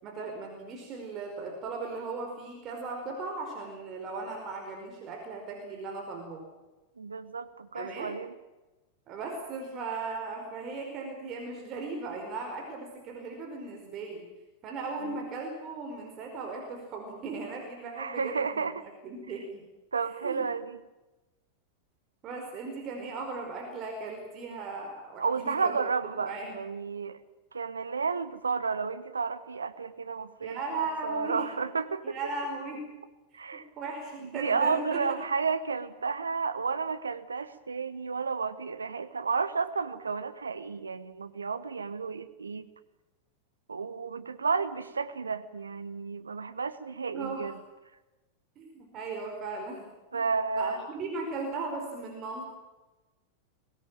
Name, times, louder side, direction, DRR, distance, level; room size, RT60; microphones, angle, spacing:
voice 1, 0.0-6.4 7.7-8.1 9.1-14.3 14.6-18.8 19.0-19.6 20.2-20.5 22.2-25.9 26.2-26.6 30.4-31.5 32.0-32.9 33.5-35.0 47.1-47.5 48.6-49.9 50.1-50.2 50.6-52.4, right 3 dB, 35° right, 2 dB, 4.9 m, -37 dB
voice 2, 7.0-8.3 15.0-15.2 18.0-18.9 19.9-20.8 25.2-27.2 27.5-32.2 33.3-33.7 34.2-42.7 43.7-47.5 50.1-50.8, right 5 dB, 75° right, 11 dB, 1.3 m, -32 dB
22.5 x 18.0 x 9.0 m, 1.1 s
figure-of-eight pair, 90°, 0 cm